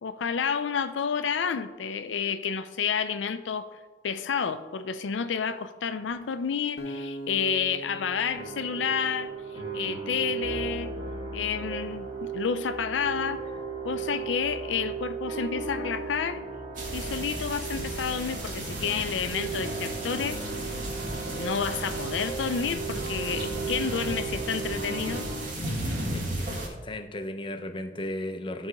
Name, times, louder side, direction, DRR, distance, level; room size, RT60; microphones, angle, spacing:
voice 1, 0.0-3.7 4.0-9.3 9.7-10.9 11.3-13.4 13.8-16.4 16.9-20.4 21.3-25.3, left 6 dB, 90° left, 10 dB, 0.4 m, -30 dB
Acoustic guitar, 6.8-10.0, equal, 60° left, 0.8 m, -41 dB
sound 1, 8.3-25.4, right 4 dB, 30° right, 1.8 m, -36 dB
sound 2, 16.7-26.7, right 1 dB, 45° right, 1.7 m, -35 dB
voice 2, 26.1-28.7, left 1 dB, 30° left, 8 dB, 0.6 m, -36 dB
10.5 x 4.1 x 4.8 m, 1.4 s
head